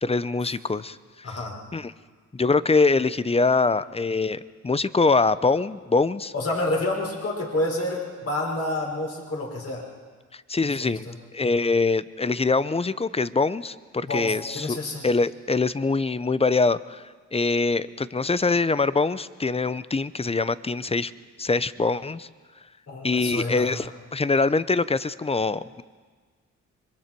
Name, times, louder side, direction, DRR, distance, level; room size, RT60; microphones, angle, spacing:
voice 1, 0.0-1.3 1.7-1.9 2.3-6.3 10.3-11.1 11.3-14.8 15.0-17.0 17.3-21.1 21.4-22.3 23.0-25.8, left 3 dB, 20° left, 16 dB, 0.7 m, -24 dB
voice 2, 1.2-1.6 6.3-9.9 10.8-11.1 14.1-15.1 22.9-23.8, left 2 dB, 50° left, 0 dB, 5.5 m, -29 dB
26.0 x 22.0 x 4.6 m, 1.5 s
cardioid pair, 65°, 30 cm